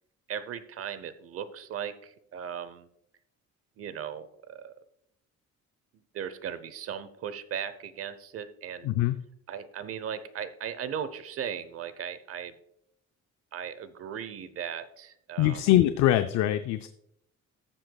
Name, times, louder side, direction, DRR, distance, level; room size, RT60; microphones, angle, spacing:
voice 1, 0.3-2.9 3.8-4.8 6.1-8.9 9.5-12.6 13.5-15.7, right 8 dB, 50° right, 14 dB, 0.8 m, -37 dB
voice 2, 8.8-9.2 15.4-16.9, left 13 dB, 65° left, 9 dB, 0.5 m, -23 dB
14.0 x 7.7 x 2.3 m, 0.73 s
cardioid pair, 170°, 29 cm